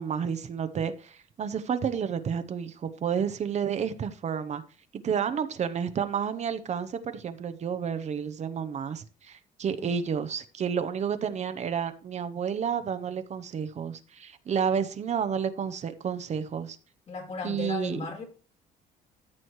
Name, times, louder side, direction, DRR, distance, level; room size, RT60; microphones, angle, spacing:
voice 1, 0.0-4.6 5.0-16.8 17.4-18.0, right 7 dB, 45° right, 0.8 m, -30 dB
voice 2, 9.8-10.2 17.1-18.2, left 4 dB, 40° left, 3.0 m, -36 dB
14.0 x 6.3 x 3.1 m
cardioid pair, 110°, 17 cm